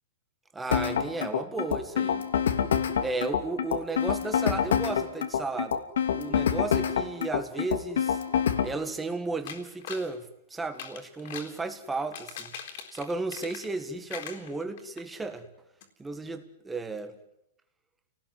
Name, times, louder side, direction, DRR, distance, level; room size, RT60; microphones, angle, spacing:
voice 1, 0.5-2.3 3.0-5.8 6.1-8.2 8.6-15.5 16.0-17.2, right 3 dB, 5° right, 8 dB, 1.7 m, -34 dB
sound 1, 0.7-8.7, left 8 dB, 85° left, 2.9 m, -26 dB
sound 2, 9.5-10.1 10.7-11.6 12.0-13.8 14.1-15.0 15.4-15.5 15.8-15.9, left 8 dB, 45° left, 3.9 m, -41 dB
30.0 x 19.0 x 9.6 m, 0.86 s
supercardioid pair, 175°, 0 cm